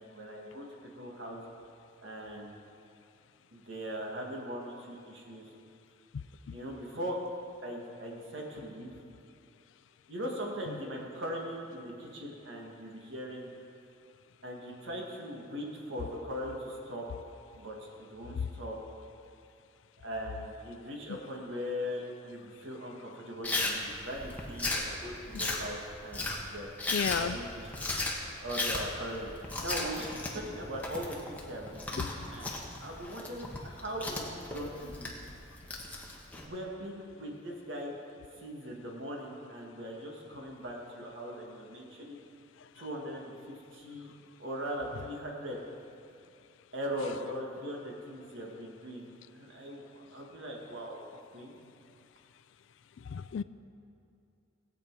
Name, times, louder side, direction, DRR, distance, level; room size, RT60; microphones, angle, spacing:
voice 1, 0.0-1.4 2.0-2.5 3.5-5.4 6.5-7.2 7.6-8.9 10.1-13.5 14.4-17.0 17.6-18.8 20.0-26.7 27.1-27.8 28.4-29.3 29.6-35.1 36.4-37.9 38.4-42.2 42.8-44.1 44.4-45.6 46.7-49.8 50.1-51.0 51.3-51.6, equal, 70° right, -1 dB, 1.9 m, -40 dB
voice 2, 6.1-6.5 26.9-27.4 32.0-32.1 53.1-53.4, left 7 dB, 70° left, 14 dB, 0.3 m, -33 dB
Chewing mastication, 23.4-36.4, left 2 dB, 10° left, 1.3 m, -36 dB
18.0 x 8.4 x 4.7 m, 2.5 s
head